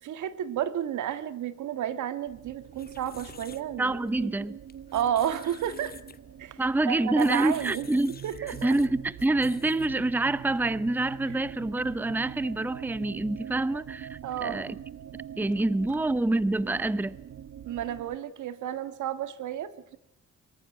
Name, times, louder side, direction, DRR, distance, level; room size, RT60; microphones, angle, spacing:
voice 1, 0.0-4.3 4.9-6.0 6.4-7.9 8.2-8.8 14.2-14.7 17.7-20.0, right 10 dB, 75° right, 13 dB, 1.7 m, -32 dB
sound 1, 2.3-18.2, right 9 dB, 55° right, 1.1 m, -44 dB
sound 2, 2.6-10.1, left 5 dB, 30° left, 1.3 m, -50 dB
voice 2, 3.8-4.6 6.6-8.1 8.5-14.7 15.4-17.2, right 2 dB, 5° right, 17 dB, 0.7 m, -27 dB
24.0 x 14.0 x 9.3 m, 0.81 s
cardioid pair, 90°, 30 cm